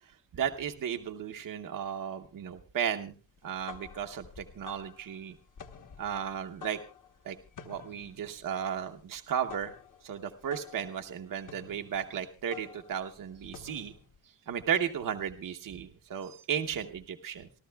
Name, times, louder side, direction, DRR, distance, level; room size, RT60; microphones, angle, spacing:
voice 1, 0.3-3.1 3.4-5.3 6.0-6.8 7.2-7.4 7.7-9.7 10.0-13.9 14.5-17.5, right 8 dB, 45° right, 5 dB, 0.9 m, -34 dB
sound 1, 3.4-14.2, left 7 dB, 45° left, 1.1 m, -51 dB
28.0 x 12.5 x 2.3 m, 0.32 s
wide cardioid pair, 150°, 45 cm